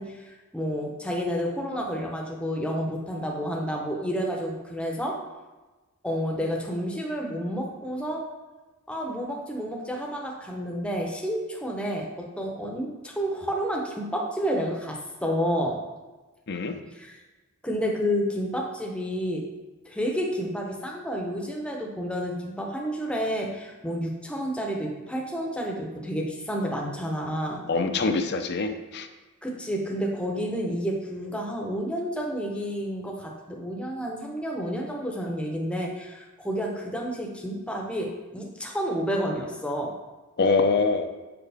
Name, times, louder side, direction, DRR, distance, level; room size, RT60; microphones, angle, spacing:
voice 1, 0.0-5.2 6.0-8.2 8.9-15.8 16.9-17.2 17.6-19.4 19.8-27.6 29.4-39.9, equal, 5° left, -1 dB, 0.7 m, -30 dB
voice 2, 27.7-29.1 40.4-41.1, left 4 dB, 50° left, 7 dB, 0.5 m, -24 dB
6.9 x 4.9 x 3.4 m, 1.2 s
head